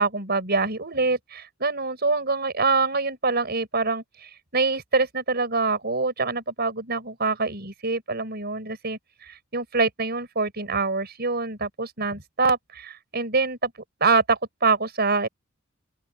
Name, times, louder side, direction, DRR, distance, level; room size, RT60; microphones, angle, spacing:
voice 1, 0.0-13.7 14.0-15.3, right 4 dB, 55° right, 5.8 m, -25 dB
open air
head